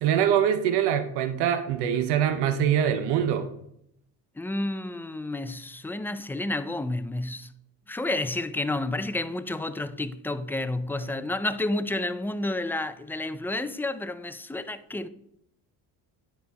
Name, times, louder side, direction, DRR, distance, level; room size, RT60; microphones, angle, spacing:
voice 1, 0.0-3.5, right 9 dB, 85° right, 0.8 m, -24 dB
voice 2, 4.4-7.5 7.9-15.1, left 2 dB, 5° left, 0.3 m, -30 dB
9.4 x 4.2 x 4.1 m
supercardioid pair, 85°, 39 cm